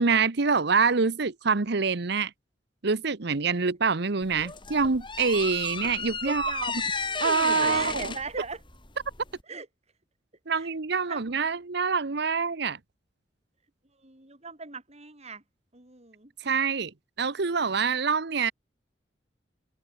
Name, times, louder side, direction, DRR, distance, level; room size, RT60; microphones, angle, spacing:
voice 1, 0.0-2.3 2.8-6.5 7.2-8.1 10.5-12.8 16.4-16.9 17.2-18.5, right 5 dB, 65° right, 1.0 m, -25 dB
sound 1, 4.2-9.4, left 4 dB, 30° left, 3.9 m, -34 dB
voice 2, 6.2-6.9 7.6-8.6 9.5-9.7 10.5-11.2 14.0-15.4 15.7-16.3, right 4 dB, 35° right, 5.7 m, -39 dB
head